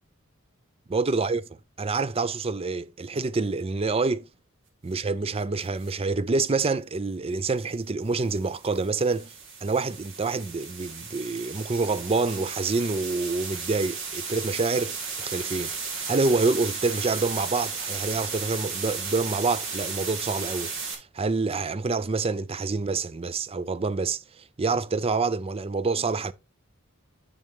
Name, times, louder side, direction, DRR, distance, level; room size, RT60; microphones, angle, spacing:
voice 1, 0.9-1.5 1.8-4.3 4.8-9.3 9.6-15.7 16.1-24.2 24.6-26.3, right 3 dB, 30° right, 0.5 m, -27 dB
sound 1, 5.6-5.9 8.1-20.9, right 5 dB, 65° right, 2.8 m, -35 dB
11.0 x 5.7 x 3.1 m
head